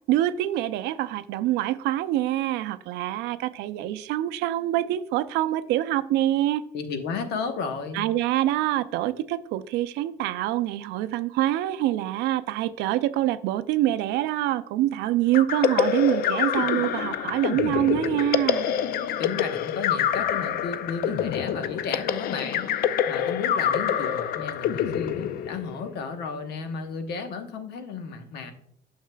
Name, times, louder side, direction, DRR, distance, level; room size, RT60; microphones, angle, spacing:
voice 1, 0.1-6.6 7.9-18.7, right 14 dB, 90° right, 14 dB, 0.4 m, -25 dB
voice 2, 6.7-8.1 19.2-22.7 23.1-28.5, left 5 dB, 80° left, 7 dB, 1.0 m, -33 dB
sound 1, 15.3-25.9, left 9 dB, 60° left, 0.4 m, -26 dB
9.2 x 6.5 x 2.2 m, 0.68 s
cardioid pair, 110°, 17 cm